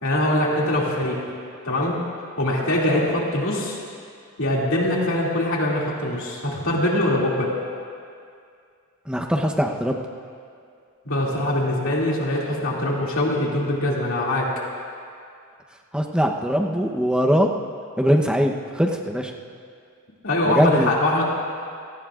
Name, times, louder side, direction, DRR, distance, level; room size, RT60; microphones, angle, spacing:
voice 1, 0.0-1.2 1.6-2.0 2.4-3.8 4.4-7.5 11.1-14.5 20.2-21.2, left 1 dB, 70° left, -4 dB, 2.5 m, -22 dB
voice 2, 9.1-10.0 15.9-17.5 18.0-19.3 20.4-20.9, equal, 5° right, 1 dB, 0.8 m, -21 dB
29.0 x 18.0 x 2.5 m, 2.3 s
head